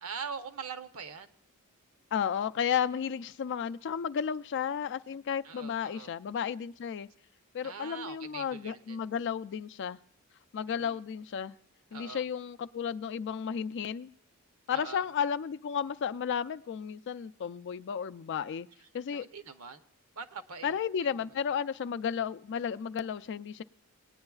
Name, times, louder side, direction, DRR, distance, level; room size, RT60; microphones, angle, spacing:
voice 1, 0.0-1.3 5.4-6.1 7.6-9.0 10.7-11.0 11.9-12.3 14.7-15.0 19.1-19.8 20.1-20.7 21.2-21.3, right 5 dB, 70° right, 9 dB, 0.8 m, -43 dB
voice 2, 2.1-7.1 7.5-10.0 10.5-11.5 11.9-14.1 14.7-18.7 18.9-19.3 20.6-23.6, left 7 dB, 55° left, 12 dB, 0.4 m, -33 dB
19.5 x 9.6 x 2.3 m, 0.68 s
head